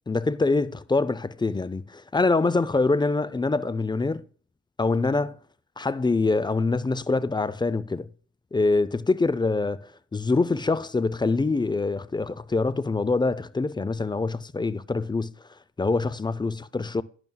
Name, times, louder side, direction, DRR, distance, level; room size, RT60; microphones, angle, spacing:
voice 1, 0.1-4.2 4.8-5.4 5.8-8.1 8.5-9.9 10.1-15.3 15.8-17.0, left 3 dB, 15° left, 0.5 m, -25 dB
11.0 x 11.0 x 2.3 m
cardioid pair, 90°, 30 cm